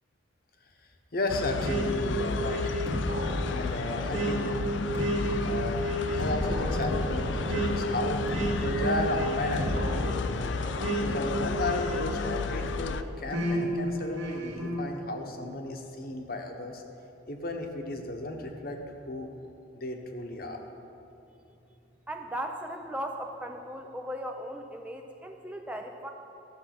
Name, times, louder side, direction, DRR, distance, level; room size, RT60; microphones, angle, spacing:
voice 1, 1.1-2.8 3.4-4.5 5.4-5.8 6.1-8.2 8.5-10.5 11.0-16.8 17.3-19.3 19.7-20.6, left 2 dB, 50° left, 3 dB, 1.1 m, -34 dB
sound 1, 1.3-13.0, left 5 dB, 80° left, 0.4 m, -33 dB
sound 2, 1.6-12.7 13.3-14.8, equal, 85° right, 2.0 m, -31 dB
sound 3, 4.9-9.9, right 1 dB, 70° right, 0.8 m, -47 dB
voice 2, 22.1-26.1, equal, 5° right, 3 dB, 0.5 m, -37 dB
13.5 x 7.6 x 5.9 m, 2.9 s
head